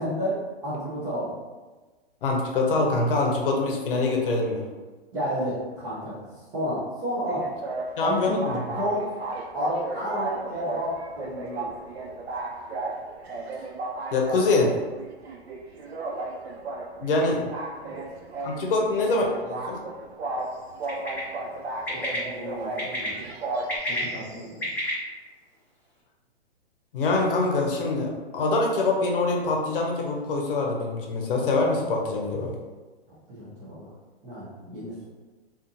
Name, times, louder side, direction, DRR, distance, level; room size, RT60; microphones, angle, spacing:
voice 1, 0.0-1.4 5.1-6.2 6.5-7.5 8.0-8.4 8.7-9.1 9.5-11.7 17.8-18.0 21.9-23.2 23.9-24.7 33.1-33.9 34.2-34.9, equal, 10° right, -10 dB, 0.3 m, -31 dB
voice 2, 2.2-4.6 8.0-8.6 14.1-14.7 17.0-17.5 18.4-19.8 26.9-32.5, left 3 dB, 60° left, 0 dB, 0.7 m, -24 dB
sound 1, 7.3-23.8, right 2 dB, 80° right, 0.5 m, -35 dB
Bird, 20.9-21.2 21.9-22.2 22.8-23.1 23.5-24.9, left 1 dB, 5° left, 0.7 m, -30 dB
2.5 x 2.4 x 2.6 m, 1.3 s
hypercardioid pair, 125°, 31 cm